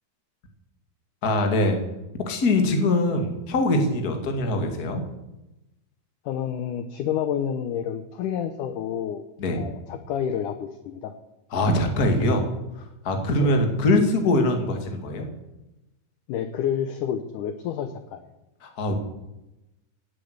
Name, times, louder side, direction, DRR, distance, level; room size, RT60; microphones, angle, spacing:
voice 1, 1.2-1.8 2.3-5.0 9.4-9.7 11.5-12.4 13.0-15.3 18.6-18.9, left 1 dB, 30° left, 4 dB, 1.9 m, -22 dB
voice 2, 6.3-9.2 9.5-11.1 13.4-13.6 16.3-18.2, left 9 dB, 75° left, 9 dB, 2.0 m, -29 dB
17.0 x 8.4 x 8.0 m, 0.96 s
omnidirectional pair, 4.4 m